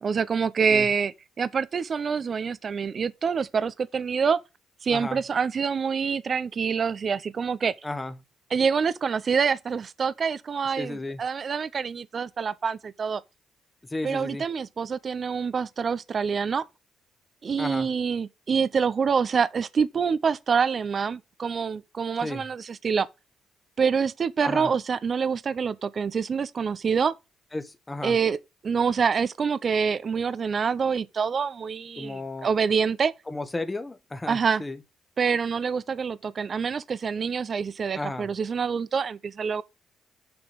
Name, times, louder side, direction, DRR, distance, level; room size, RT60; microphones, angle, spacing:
voice 1, 0.0-4.4 4.8-7.7 8.5-13.2 14.0-16.6 17.4-23.1 23.8-27.1 28.0-28.4 28.6-33.1 34.3-34.6 35.2-39.6, right 6 dB, 45° right, 0.7 m, -26 dB
voice 2, 4.9-5.2 7.8-8.1 10.8-11.2 13.9-14.4 17.6-17.9 22.2-22.4 24.4-24.7 27.5-28.2 32.0-32.5 33.3-34.8 37.9-38.3, left 2 dB, 20° left, 1.2 m, -33 dB
7.0 x 6.0 x 5.1 m
cardioid pair, 90°, 0 cm